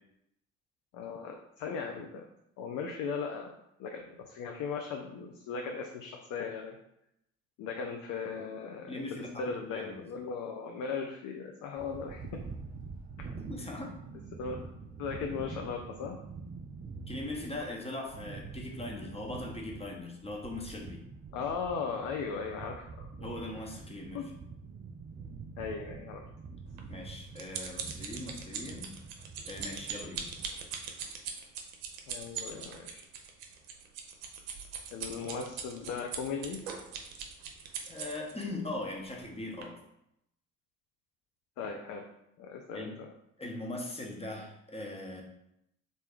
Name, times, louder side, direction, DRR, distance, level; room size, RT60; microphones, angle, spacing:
voice 1, 0.9-2.2 2.6-3.5 3.8-6.8 7.6-12.4 14.4-14.6 15.0-16.2 21.3-23.1 24.1-24.2 25.6-26.2 32.1-33.0 34.9-36.6 41.6-42.0 42.4-43.1, left 5 dB, 50° left, 3 dB, 0.5 m, -37 dB
voice 2, 8.9-10.0 13.5-13.9 17.1-21.0 23.2-24.3 26.9-28.9 29.4-30.2 37.9-39.7 42.7-43.0 43.4-45.2, left 2 dB, 15° left, 0 dB, 0.9 m, -40 dB
sound 1, 11.8-30.5, right 4 dB, 20° right, 0.4 m, -46 dB
sound 2, 26.8-38.4 39.1-39.3 39.6-39.7, right 7 dB, 60° right, 0.7 m, -41 dB
3.2 x 2.7 x 3.4 m, 0.79 s
figure-of-eight pair, 50°, 40 cm